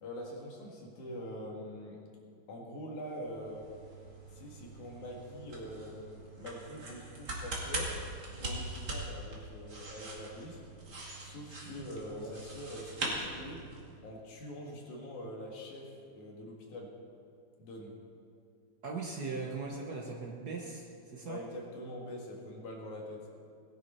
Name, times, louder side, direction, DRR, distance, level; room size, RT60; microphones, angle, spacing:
voice 1, 0.0-2.0 2.5-3.7 4.3-8.0 8.3-10.6 11.2-13.6 14.0-17.0 17.6-18.0 21.2-23.3, left 1 dB, 70° left, -1 dB, 3.3 m, -44 dB
sound 1, 3.1-13.9, right 2 dB, 35° right, 2.5 m, -42 dB
voice 2, 12.0-12.3 18.8-21.4, right 4 dB, 75° right, -2 dB, 0.9 m, -40 dB
19.0 x 11.0 x 4.4 m, 2.3 s
omnidirectional pair, 3.6 m